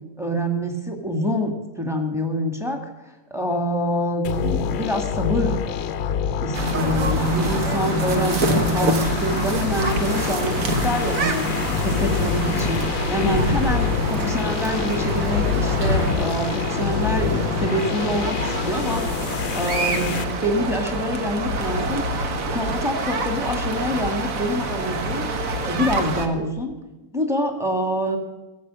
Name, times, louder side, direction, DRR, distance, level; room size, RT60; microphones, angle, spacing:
voice 1, 0.2-2.8 3.3-5.5 6.4-22.0 22.5-25.2 25.6-26.7 27.1-28.2, equal, ahead, 3 dB, 1.6 m, -26 dB
sound 1, 4.2-20.2, left 8 dB, 85° left, 1.5 m, -27 dB
sound 2, 6.5-26.3, right 1 dB, 50° right, 1.4 m, -26 dB
sound 3, 7.1-16.1, left 1 dB, 85° right, 3.6 m, -31 dB
15.0 x 7.7 x 7.5 m, 1.1 s
omnidirectional pair, 2.1 m